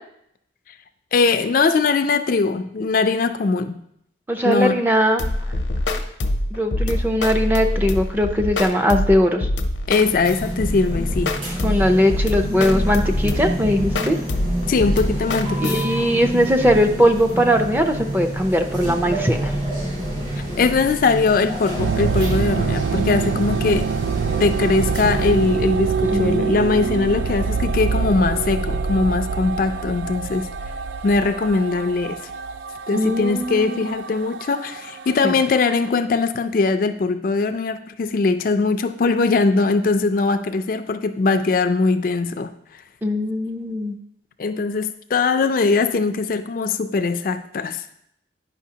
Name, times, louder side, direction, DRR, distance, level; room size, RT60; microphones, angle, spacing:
voice 1, 1.1-3.8 4.4-4.8 9.9-11.3 14.7-16.0 20.6-23.9 24.4-30.5 31.0-32.3 32.9-42.5 44.4-47.8, left 4 dB, 50° left, 8 dB, 0.4 m, -21 dB
voice 2, 4.3-5.2 6.5-9.5 11.6-14.2 15.6-19.5 26.0-27.2 32.9-33.9 35.2-35.4 43.0-44.0, equal, 10° right, 4 dB, 0.5 m, -20 dB
sound 1, 5.2-15.8, left 1 dB, 85° left, 0.7 m, -24 dB
sound 2, 10.0-25.6, right 1 dB, 50° right, 3.1 m, -28 dB
sound 3, 21.8-35.9, right 5 dB, 80° right, 0.3 m, -25 dB
9.8 x 5.6 x 2.8 m, 0.73 s
head